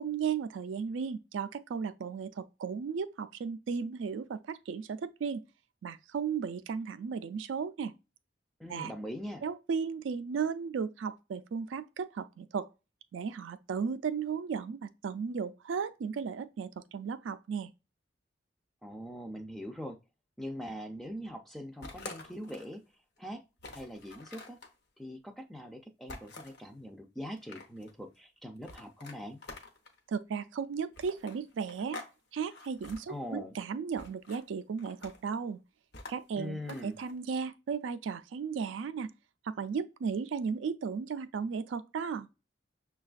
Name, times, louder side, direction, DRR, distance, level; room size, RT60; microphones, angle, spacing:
voice 1, 0.0-5.4 5.8-7.9 8.7-8.9 9.4-12.7 13.1-17.7 30.1-32.0 32.3-35.6 36.1-39.1 39.4-42.3, right 6 dB, 85° right, 0.3 m, -35 dB
voice 2, 8.6-9.4 18.8-20.0 20.4-22.8 23.2-23.4 23.7-24.6 25.0-29.4 33.1-33.6 36.4-37.0, equal, ahead, 0.3 m, -42 dB
sound 1, 21.8-22.8 23.2-23.3 23.6-24.7 26.1-26.6 27.2-27.9 28.6-30.0 30.9-32.1 32.4-33.0 34.0-34.4 34.8-35.3 35.9-37.1, left 2 dB, 60° left, 0.8 m, -47 dB
6.3 x 2.3 x 2.4 m
head